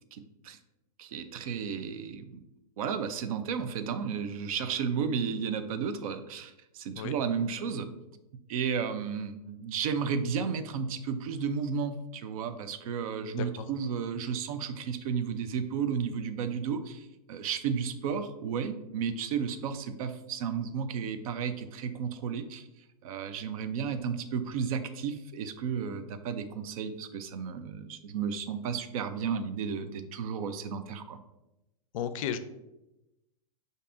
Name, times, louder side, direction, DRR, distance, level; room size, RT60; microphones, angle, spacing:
voice 1, 0.1-0.6 1.0-2.4 2.8-7.9 8.5-22.6 23.0-31.2, right 6 dB, 65° right, 9 dB, 0.5 m, -33 dB
voice 2, 13.2-13.7 31.9-32.4, left 8 dB, 55° left, 11 dB, 0.4 m, -34 dB
6.6 x 2.6 x 2.5 m, 0.95 s
hypercardioid pair, 120°, 20 cm